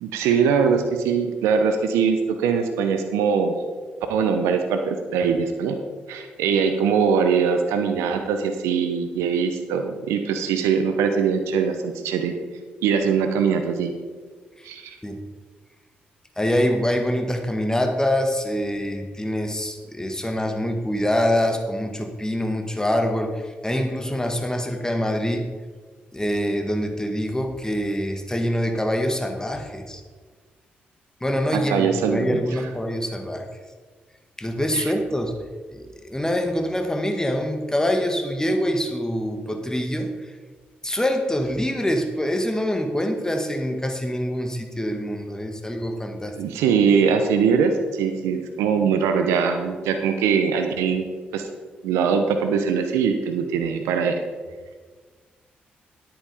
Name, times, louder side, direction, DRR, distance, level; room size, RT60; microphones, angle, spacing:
voice 1, 0.0-3.5 4.1-5.7 6.1-12.3 12.8-13.9 14.6-14.9 31.5-32.6 34.7-34.9 46.4-51.1 51.3-51.5 51.8-54.2, right 6 dB, 80° right, 6 dB, 0.8 m, -22 dB
voice 2, 16.4-25.5 26.1-30.0 31.2-33.5 34.4-35.3 35.7-40.1 40.8-46.4, equal, 15° left, 5 dB, 1.9 m, -25 dB
10.0 x 8.9 x 4.9 m, 1.5 s
hypercardioid pair, 40°, 5 cm